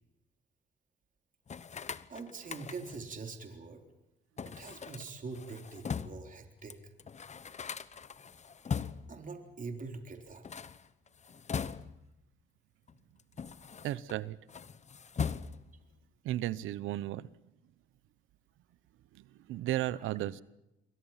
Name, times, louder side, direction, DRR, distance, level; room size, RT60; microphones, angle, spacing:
sound 1, 1.5-3.1 4.4-6.3 6.7-6.8 7.0-9.2 10.3-12.2 12.9-14.2 14.5-15.8, left 6 dB, 35° left, 0.9 m, -40 dB
voice 1, 2.1-3.8 4.5-6.8 9.1-10.5 19.8-20.1, right 4 dB, 40° right, 4 dB, 3.7 m, -44 dB
voice 2, 13.8-14.4 16.2-17.3 19.2-20.4, right 14 dB, 90° right, 19 dB, 0.9 m, -34 dB
28.0 x 22.5 x 5.8 m, 0.90 s
cardioid pair, 90°, 20 cm